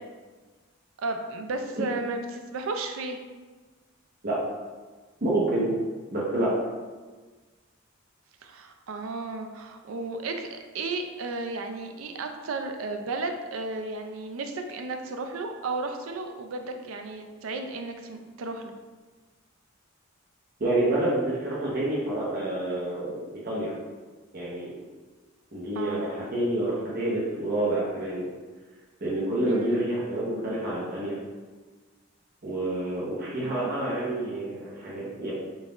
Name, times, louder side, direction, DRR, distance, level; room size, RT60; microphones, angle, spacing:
voice 1, 1.0-3.2 6.7-6.8 8.4-18.7 25.7-26.1 29.4-29.9 33.4-33.7, right 3 dB, 85° right, 5 dB, 0.4 m, -34 dB
voice 2, 5.2-5.7 6.1-6.5 20.6-23.2 23.4-23.7 24.3-24.7 25.5-28.2 29.0-31.2 32.4-35.3, right 1 dB, 50° right, -7 dB, 0.8 m, -28 dB
3.9 x 2.4 x 3.8 m, 1.3 s
head